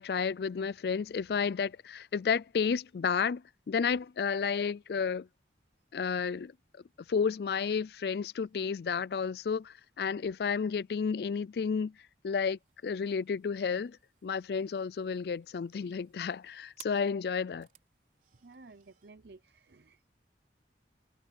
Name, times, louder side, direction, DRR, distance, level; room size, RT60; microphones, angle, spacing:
voice 1, 0.0-3.4 3.7-5.3 5.9-6.5 7.1-11.9 12.2-14.0 14.2-17.7, left 6 dB, 60° left, 0.4 m, -31 dB
sound 1, 12.5-19.1, right 10 dB, 45° right, 4.7 m, -60 dB
voice 2, 18.4-20.1, right 3 dB, 65° right, 0.7 m, -54 dB
head